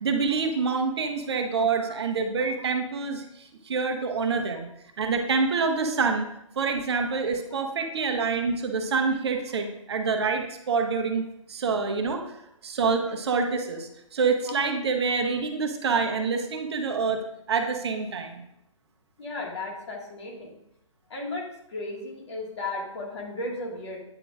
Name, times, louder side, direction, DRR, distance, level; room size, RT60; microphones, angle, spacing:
voice 1, 0.0-4.7 5.0-6.3 6.6-12.2 12.6-17.2 17.5-18.4, right 4 dB, 50° right, 5 dB, 0.9 m, -26 dB
voice 2, 19.2-20.5 21.1-24.0, left 2 dB, 55° left, -1 dB, 1.9 m, -35 dB
8.9 x 5.9 x 2.5 m, 0.80 s
figure-of-eight pair, 135°, 17 cm